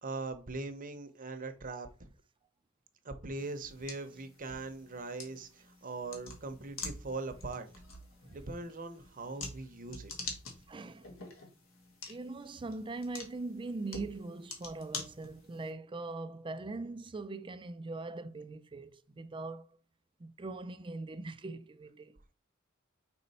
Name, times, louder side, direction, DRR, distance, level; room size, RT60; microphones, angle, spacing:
voice 1, 0.0-2.1 3.0-7.7 8.3-10.4, right 3 dB, 40° right, 0.8 m, -41 dB
sound 1, 3.4-15.7, left 3 dB, 70° left, 1.7 m, -47 dB
voice 2, 10.7-11.2 12.1-19.8 20.2-22.2, right 3 dB, 25° right, 0.4 m, -41 dB
5.3 x 4.2 x 4.2 m
head